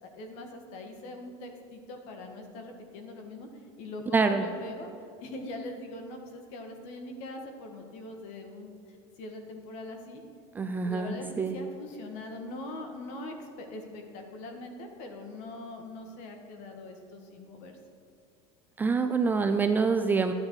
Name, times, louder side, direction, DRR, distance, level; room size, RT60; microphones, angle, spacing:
voice 1, 0.0-4.9 5.2-10.2 10.8-17.8, left 2 dB, 50° left, 4 dB, 1.7 m, -42 dB
voice 2, 4.1-4.5 10.5-11.6 18.8-20.3, right 4 dB, 10° right, 7 dB, 0.3 m, -26 dB
12.0 x 9.6 x 4.8 m, 2.6 s
cardioid pair, 175°, 15 cm